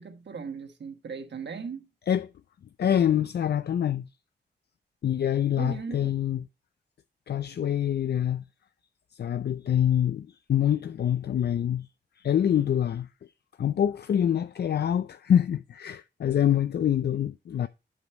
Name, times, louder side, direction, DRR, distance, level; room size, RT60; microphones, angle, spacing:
voice 1, 0.0-1.9 5.6-6.1, right 5 dB, 75° right, 1.4 m, -38 dB
voice 2, 2.8-4.0 5.0-6.4 7.3-8.4 9.2-11.9 12.2-13.1 13.6-17.7, left 10 dB, 65° left, 0.4 m, -25 dB
8.1 x 5.0 x 4.5 m
wide cardioid pair, 175°, 18 cm